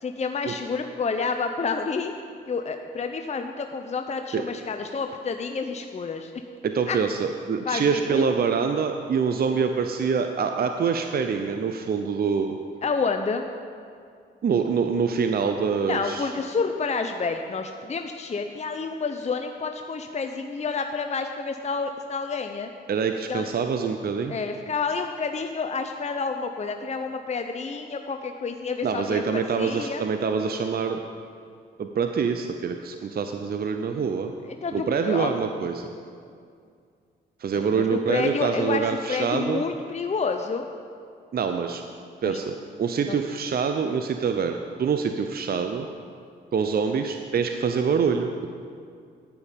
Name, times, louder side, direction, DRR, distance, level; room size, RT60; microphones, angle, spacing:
voice 1, 0.0-2.1 2.5-6.3 6.9-7.0 7.7-8.2 12.8-13.5 15.9-22.7 23.3-23.5 24.3-30.0 34.5-35.3 37.5-40.6 42.2-42.4 43.1-43.2, left 4 dB, 30° left, 5 dB, 0.6 m, -29 dB
voice 2, 6.6-12.6 14.4-16.3 22.9-24.4 28.8-31.0 31.8-34.3 34.7-35.9 37.4-39.6 41.3-41.8 42.2-45.9 46.5-48.3, right 6 dB, 45° right, 6 dB, 0.7 m, -25 dB
9.7 x 9.3 x 5.3 m, 2.3 s
supercardioid pair, 55°, 21 cm